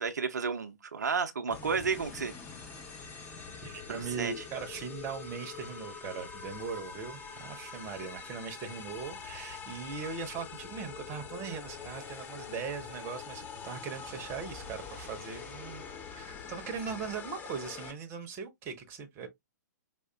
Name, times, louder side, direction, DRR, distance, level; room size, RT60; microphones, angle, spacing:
voice 1, 0.0-2.3 3.9-4.3, right 5 dB, 70° right, 0.5 m, -32 dB
sound 1, 1.5-17.9, left 5 dB, 20° left, 0.6 m, -45 dB
sound 2, 1.8-17.1, left 6 dB, 55° left, 2.1 m, -54 dB
voice 2, 3.6-19.3, right 6 dB, 25° right, 0.7 m, -40 dB
4.8 x 2.4 x 2.2 m
figure-of-eight pair, 115°, 10 cm